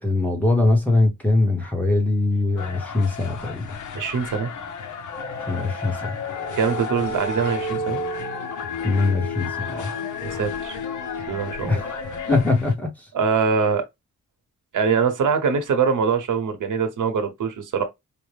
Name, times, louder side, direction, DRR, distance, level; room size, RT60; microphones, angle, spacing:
voice 1, 0.0-3.7 5.5-6.1 8.8-9.9 11.7-12.0 12.3-12.9, left 2 dB, 5° left, 0.9 m, -22 dB
sound 1, 2.6-12.7, left 6 dB, 70° left, 0.7 m, -36 dB
voice 2, 3.9-4.5 6.6-8.0 10.2-10.8 11.3-11.8 13.1-13.8 14.7-17.8, right 6 dB, 75° right, 1.0 m, -23 dB
sound 2, 5.1-12.4, left 2 dB, 45° left, 2.7 m, -31 dB
4.8 x 2.1 x 3.2 m
wide cardioid pair, 175°, 31 cm